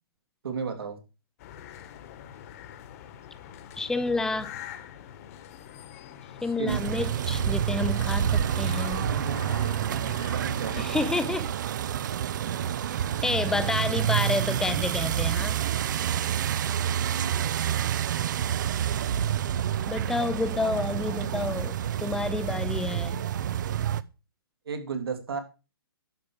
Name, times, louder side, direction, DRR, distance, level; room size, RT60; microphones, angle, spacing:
voice 1, 0.4-1.0 6.4-6.9 9.0-11.3 17.0-17.4 24.6-25.4, right 5 dB, 75° right, 3.1 m, -35 dB
sound 1, 1.4-10.8, left 10 dB, 40° left, 1.4 m, -45 dB
voice 2, 3.8-4.5 6.4-9.1 10.8-11.5 13.2-15.6 19.9-23.2, left 3 dB, 5° left, 0.6 m, -29 dB
sound 2, 6.7-24.0, right 10 dB, 50° right, 0.6 m, -28 dB
11.5 x 4.8 x 7.3 m
hypercardioid pair, 150°, 13 cm